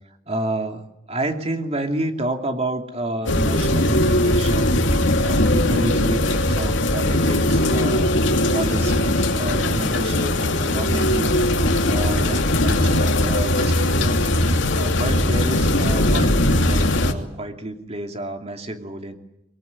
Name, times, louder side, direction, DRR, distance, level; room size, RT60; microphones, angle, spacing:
voice 1, 0.3-19.2, right 2 dB, 30° right, 5 dB, 2.9 m, -30 dB
sound 1, 3.3-17.1, left 1 dB, 65° left, 2.8 m, -19 dB
23.5 x 23.0 x 9.8 m, 0.83 s
head